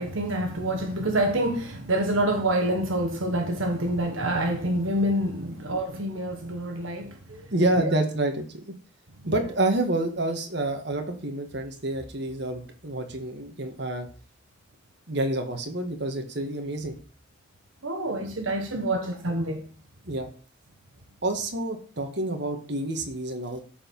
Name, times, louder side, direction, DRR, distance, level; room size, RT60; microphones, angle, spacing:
voice 1, 0.0-7.2 9.2-9.3 17.8-19.6, right 1 dB, 80° right, 1.4 m, -27 dB
voice 2, 7.3-8.7 9.3-14.1 15.1-16.9 19.0-19.1 20.1-20.3 21.2-23.6, right 2 dB, 55° right, 1.7 m, -28 dB
12.5 x 4.7 x 5.4 m
head